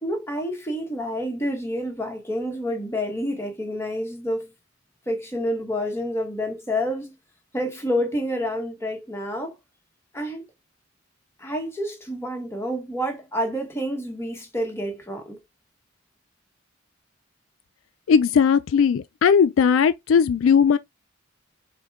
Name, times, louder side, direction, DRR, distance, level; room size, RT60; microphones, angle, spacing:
voice 1, 0.0-4.5 5.1-7.1 7.5-9.6 10.1-10.4 11.4-15.4, equal, 15° left, 1.3 m, -28 dB
voice 2, 18.1-20.8, left 6 dB, 70° left, 0.3 m, -18 dB
6.5 x 2.2 x 3.6 m
head